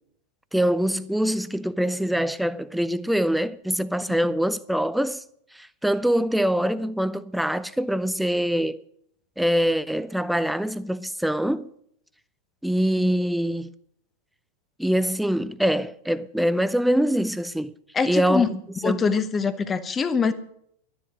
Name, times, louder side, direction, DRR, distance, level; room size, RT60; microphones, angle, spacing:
voice 1, 0.5-5.2 5.5-8.8 9.4-11.7 12.6-13.7 14.8-17.8 18.0-19.1, equal, ahead, 0.5 m, -24 dB
voice 2, 17.9-18.5 18.8-20.3, left 5 dB, 20° left, 1.0 m, -23 dB
12.5 x 10.5 x 6.3 m
figure-of-eight pair, 90°, 0 cm